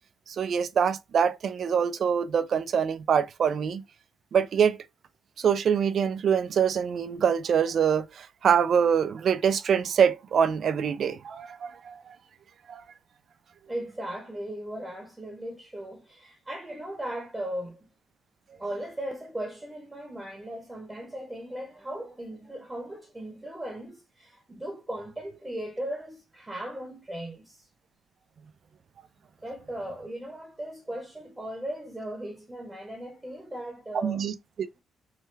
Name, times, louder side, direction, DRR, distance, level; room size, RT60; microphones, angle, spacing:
voice 1, 0.3-3.8 4.3-4.8 5.4-12.1 12.7-12.8 34.0-34.3 34.6-34.7, right 7 dB, 55° right, 0.4 m, -24 dB
voice 2, 13.7-17.9 18.5-27.7 29.4-34.2, right 1 dB, 15° right, 0.9 m, -37 dB
3.2 x 2.2 x 3.1 m
cardioid pair, 90°, 0 cm